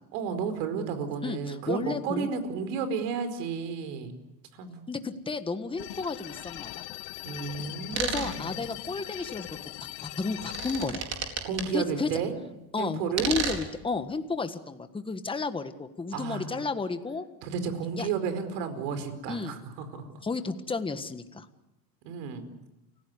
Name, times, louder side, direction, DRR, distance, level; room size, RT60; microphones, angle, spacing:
voice 1, 0.1-4.1 4.5-4.8 7.2-8.6 11.4-12.3 12.8-13.3 16.1-16.5 17.4-20.1 22.0-22.5, right 6 dB, 70° right, 9 dB, 4.9 m, -32 dB
voice 2, 1.2-2.3 4.9-6.7 8.0-9.5 10.0-11.1 11.7-12.1 12.7-17.3 18.0-18.1 19.3-19.5 20.2-21.5, left 4 dB, 10° left, 9 dB, 1.5 m, -32 dB
sound 1, 5.8-10.9, left 15 dB, 60° left, 1.8 m, -40 dB
sound 2, 7.9-8.4 10.3-11.6 13.1-13.7, right 5 dB, 30° right, 4.4 m, -32 dB
29.5 x 16.5 x 9.7 m, 0.94 s
supercardioid pair, 125°, 50 cm